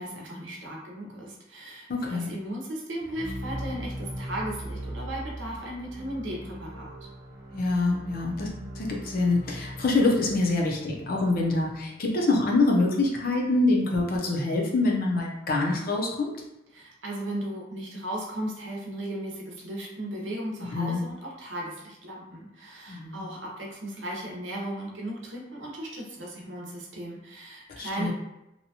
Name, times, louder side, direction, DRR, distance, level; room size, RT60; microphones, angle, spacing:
voice 1, 0.0-6.9 16.7-28.1, right 1 dB, 80° right, -2 dB, 0.7 m, -36 dB
voice 2, 1.9-2.3 7.5-8.5 8.8-16.3 20.7-21.0 22.9-23.2 27.7-28.1, left 2 dB, 50° left, 0 dB, 0.6 m, -25 dB
sound 1, 3.0-13.0, equal, 15° right, 0.3 m, -40 dB
2.8 x 2.2 x 2.7 m, 0.89 s
head